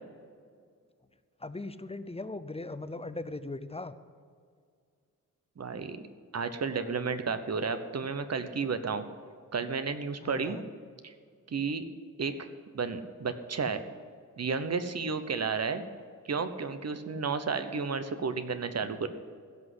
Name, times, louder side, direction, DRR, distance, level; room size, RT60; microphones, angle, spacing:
voice 1, 1.4-3.9 10.2-10.7, left 2 dB, 20° left, 12 dB, 0.5 m, -39 dB
voice 2, 5.6-6.0 6.3-9.0 9.5-10.6 11.0-11.1 11.5-11.8 12.2-12.5 12.7-13.8 14.4-15.8 16.3-19.1, right 5 dB, 50° right, 10 dB, 1.0 m, -32 dB
16.5 x 6.3 x 7.9 m, 2.1 s
wide cardioid pair, 120°, 34 cm